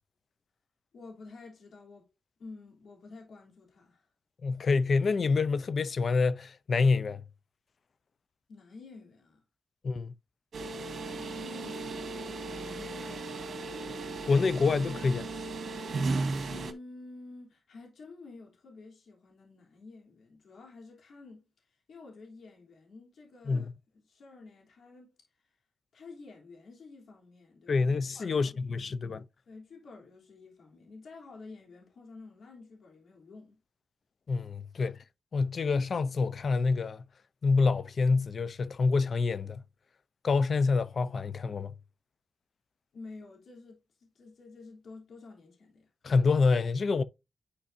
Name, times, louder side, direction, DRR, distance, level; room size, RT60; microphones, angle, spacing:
voice 1, 0.9-2.1 2.4-4.1 8.5-9.4 11.2-12.2 12.6-13.5 16.5-25.5 25.9-27.9 28.1-28.9 29.5-33.6 42.9-45.9, left 3 dB, 80° left, 3.3 m, -50 dB
voice 2, 4.4-7.2 9.8-10.1 14.3-15.3 23.5-23.7 27.7-29.2 34.3-35.0 35.3-37.0 37.4-39.6 40.2-41.7 46.0-47.0, left 4 dB, 60° left, 0.7 m, -27 dB
sound 1, 10.5-16.7, right 3 dB, 70° right, 1.8 m, -35 dB
11.5 x 4.8 x 2.7 m
cardioid pair, 65°, 0 cm